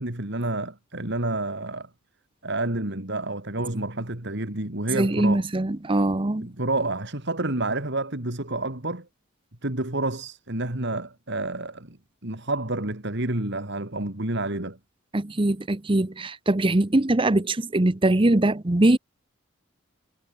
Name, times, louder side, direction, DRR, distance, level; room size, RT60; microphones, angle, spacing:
voice 1, 0.0-1.9 2.4-5.4 6.4-9.1 9.6-12.0 12.2-14.8, right 2 dB, 55° right, 3.1 m, -29 dB
voice 2, 4.9-6.5 15.1-19.0, right 1 dB, 25° right, 0.8 m, -22 dB
head